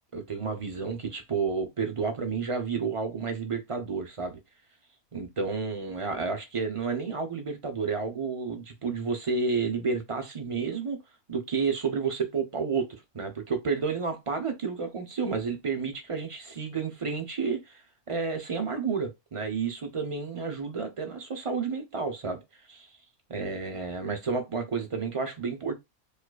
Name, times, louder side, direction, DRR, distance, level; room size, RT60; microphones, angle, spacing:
voice 1, 0.1-4.4 5.1-11.0 11.3-22.4 22.7-22.9 23.3-25.7, right 5 dB, 35° right, 0.6 m, -31 dB
4.9 x 2.4 x 2.2 m
omnidirectional pair, 1.4 m